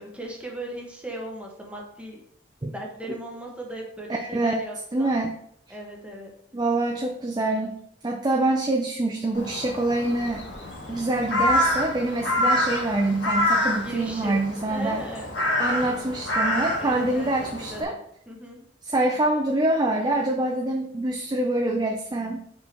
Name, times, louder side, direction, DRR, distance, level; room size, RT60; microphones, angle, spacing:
voice 1, 0.0-2.2 2.7-5.1 5.7-6.3 13.8-14.4 14.7-15.4 15.8-15.9 16.8-18.0 18.3-18.6, right 1 dB, 5° right, -1 dB, 1.2 m, -37 dB
voice 2, 4.1-4.6 4.9-5.3 6.5-10.4 10.9-15.0 15.6-17.9 18.8-22.4, right 2 dB, 20° right, 2 dB, 0.5 m, -25 dB
Crow, 9.3-17.8, left 1 dB, 80° left, 1.9 m, -27 dB
5.2 x 5.0 x 4.4 m, 0.70 s
head